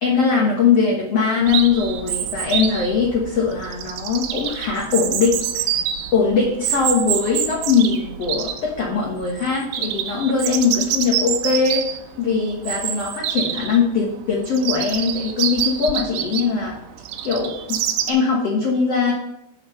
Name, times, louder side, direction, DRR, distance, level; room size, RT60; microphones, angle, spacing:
voice 1, 0.0-5.8 6.1-11.9 12.2-16.8 17.2-17.6 18.0-19.1, left 5 dB, 60° left, -3 dB, 1.6 m, -21 dB
Chirp tweet, 1.5-18.1, right 10 dB, 80° right, 2.6 m, -26 dB
10.0 x 5.1 x 6.5 m, 0.83 s
omnidirectional pair, 4.9 m